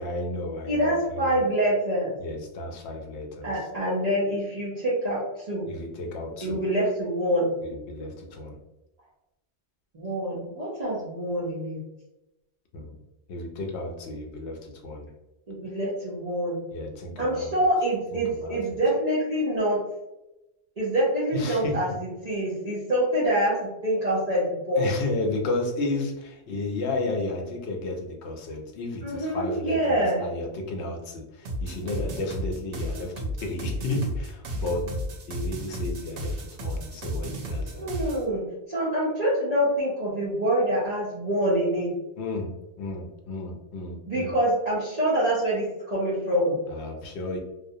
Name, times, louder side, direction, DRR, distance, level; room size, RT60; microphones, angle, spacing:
voice 1, 0.0-1.4 2.2-3.7 5.7-6.6 7.6-8.6 12.7-13.0 13.3-15.1 16.7-17.5 18.1-18.8 21.3-21.7 24.8-37.9 42.2-44.3 46.7-47.4, left 2 dB, 75° left, 1 dB, 0.9 m, -33 dB
voice 2, 0.7-2.2 3.4-5.7 6.4-7.5 9.9-11.8 15.5-16.6 17.2-19.8 20.8-24.8 29.0-30.3 37.8-41.9 44.1-46.6, right 1 dB, 40° right, -9 dB, 0.7 m, -26 dB
sound 1, 31.4-38.2, equal, 85° right, 0.9 m, -33 dB
2.5 x 2.1 x 2.6 m, 0.94 s
omnidirectional pair, 1.2 m